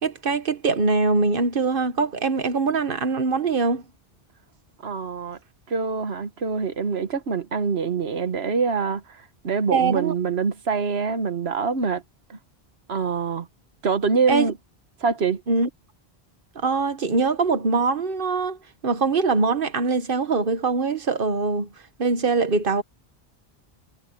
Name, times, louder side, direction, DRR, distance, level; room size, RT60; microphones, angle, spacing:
voice 1, 0.0-3.8 9.7-10.1 14.3-14.5 15.5-15.7 16.5-21.7 22.0-22.8, right 4 dB, 60° right, 1.3 m, -23 dB
voice 2, 4.8-5.4 5.7-9.0 9.4-12.0 12.9-13.5 13.8-14.5 15.0-15.4, right 5 dB, 80° right, 1.5 m, -24 dB
omnidirectional pair, 1.0 m